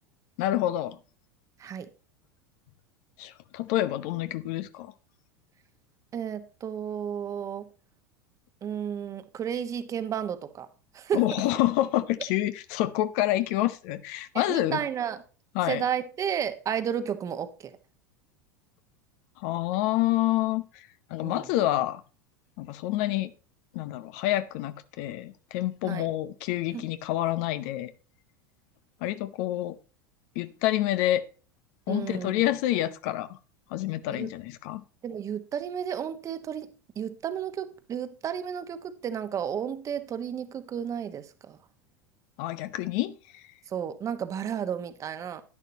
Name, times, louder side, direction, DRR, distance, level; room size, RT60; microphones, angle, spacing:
voice 1, 0.4-1.0 3.2-4.9 11.1-14.8 15.5-15.8 19.4-22.0 22.6-23.3 23.7-27.9 29.0-29.8 30.3-31.2 31.9-33.4 33.7-34.8 42.4-43.4, left 14 dB, 55° left, 0.8 m, -28 dB
voice 2, 6.1-7.7 8.6-10.7 10.9-11.2 14.3-15.2 15.7-17.8 21.2-21.5 25.8-26.1 26.7-26.9 31.9-32.5 34.1-34.3 35.0-41.6 43.7-45.4, right 8 dB, 30° right, 1.3 m, -32 dB
11.0 x 11.0 x 2.9 m
figure-of-eight pair, 80°, 10 cm